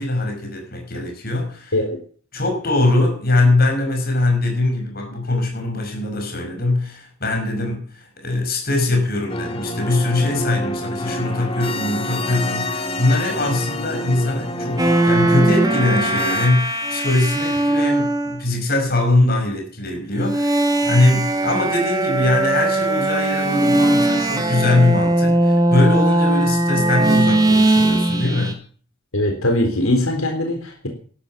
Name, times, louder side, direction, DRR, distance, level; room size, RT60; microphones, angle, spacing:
voice 1, 0.0-1.7 2.3-28.6, left 2 dB, 45° left, 5.5 m, -21 dB
sound 1, 9.3-16.5, left 1 dB, 25° left, 2.0 m, -27 dB
sound 2, 14.8-18.4 20.1-28.5, right 1 dB, 20° right, 2.5 m, -19 dB
voice 2, 29.1-30.9, left 1 dB, 90° left, 3.7 m, -21 dB
12.5 x 12.0 x 7.4 m
head